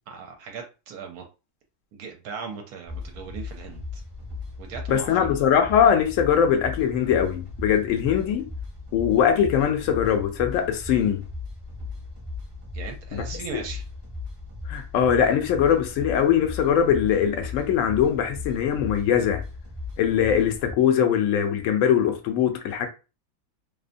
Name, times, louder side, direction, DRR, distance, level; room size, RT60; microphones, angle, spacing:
voice 1, 0.1-1.2 1.9-4.0 4.6-5.3 12.7-13.8, right 6 dB, 75° right, 1.0 m, -38 dB
sound 1, 2.9-20.7, left 3 dB, 30° right, 0.5 m, -37 dB
voice 2, 4.9-8.5 8.9-11.2 13.1-13.2 14.7-19.4 20.0-22.9, left 8 dB, 70° left, 0.8 m, -21 dB
2.7 x 2.1 x 2.5 m
omnidirectional pair, 1.7 m